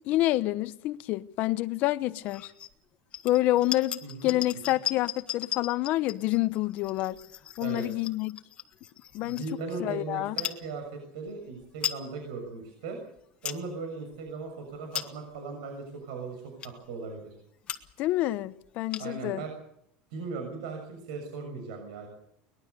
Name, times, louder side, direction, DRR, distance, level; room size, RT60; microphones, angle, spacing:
voice 1, 0.1-2.5 3.2-7.2 7.6-8.4 9.1-9.4 9.8-10.4 18.0-19.4, left 16 dB, 45° left, 0.9 m, -28 dB
sound 1, 2.2-2.7 3.1-9.8 10.3-10.6 11.3-11.4 11.6-12.0 12.5-12.6 13.1-13.6 14.1-14.3 14.7-15.4 16.0-16.1 16.6-16.9 17.4-17.5 17.6-18.1 18.3-18.4 18.6-19.3, left 10 dB, 30° left, 1.5 m, -37 dB
voice 2, 4.0-4.3 7.6-7.9 9.2-13.0 13.4-17.3 19.0-19.5 20.1-22.1, right 4 dB, 85° right, 6.7 m, -38 dB
23.0 x 21.0 x 6.8 m
cardioid pair, 160°, 4 cm